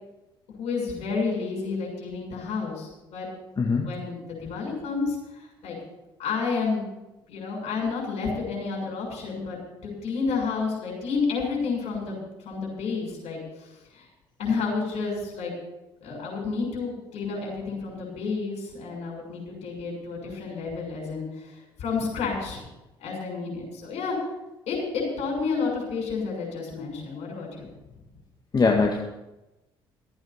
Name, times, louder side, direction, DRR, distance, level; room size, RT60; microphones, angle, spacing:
voice 1, 0.6-3.3 3.7-5.8 6.2-6.8 7.3-14.0 14.4-15.5 16.0-22.7 23.0-24.2 24.7-27.7, left 4 dB, 60° left, -1 dB, 6.7 m, -30 dB
voice 2, 28.5-29.0, left 4 dB, 35° left, 0 dB, 2.0 m, -21 dB
15.0 x 8.9 x 7.1 m, 0.98 s
hypercardioid pair, 55°, 12 cm